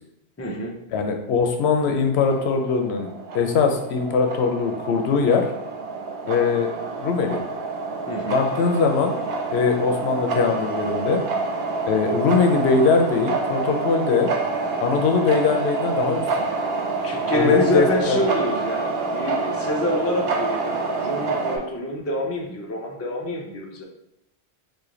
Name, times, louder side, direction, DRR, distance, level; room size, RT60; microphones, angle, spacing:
voice 1, 0.4-0.7 8.1-8.4 17.0-23.8, left 1 dB, 20° left, 0 dB, 0.4 m, -26 dB
voice 2, 0.9-3.1 3.3-5.4 6.3-6.7 7.0-7.4 8.3-9.2 9.5-11.2 11.9-14.3 14.8-16.2 17.3-18.2, left 5 dB, 90° left, 4 dB, 0.8 m, -21 dB
sound 1, 2.1-21.6, right 3 dB, 75° right, 0.8 m, -27 dB
3.1 x 2.5 x 3.7 m, 0.80 s
omnidirectional pair, 1.1 m